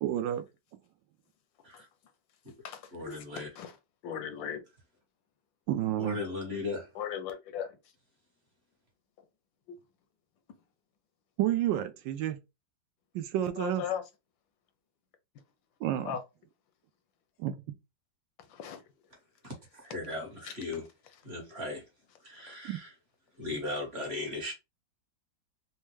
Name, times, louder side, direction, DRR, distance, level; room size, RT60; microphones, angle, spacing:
voice 1, 0.0-0.4 5.7-6.2 11.4-12.4 13.1-13.9 15.8-16.2 17.4-17.6 22.6-22.8, right 12 dB, 80° right, 1.2 m, -30 dB
voice 2, 2.9-3.5 6.0-6.8 19.8-20.8 21.2-21.8 22.2-22.9 23.4-24.5, left 2 dB, 35° right, 1.4 m, -37 dB
voice 3, 4.0-4.6 7.0-7.7 13.6-14.0 16.1-16.2 18.6-18.8, left 9 dB, 85° left, 1.4 m, -35 dB
4.3 x 2.2 x 3.1 m
omnidirectional pair, 2.0 m